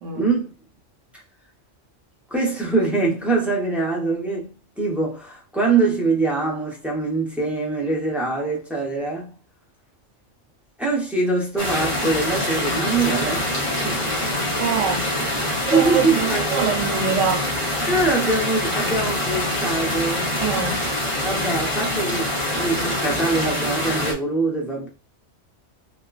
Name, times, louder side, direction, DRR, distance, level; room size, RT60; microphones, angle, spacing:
voice 1, 0.1-0.5 2.3-9.3 10.8-14.2 15.7-16.9 17.8-20.3 21.2-24.9, right 3 dB, ahead, 0.7 m, -23 dB
sound 1, 11.6-24.1, left 1 dB, 30° left, 0.8 m, -25 dB
voice 2, 14.6-17.4 20.4-20.8, right 6 dB, 85° right, 1.1 m, -25 dB
3.6 x 2.4 x 2.3 m
omnidirectional pair, 1.3 m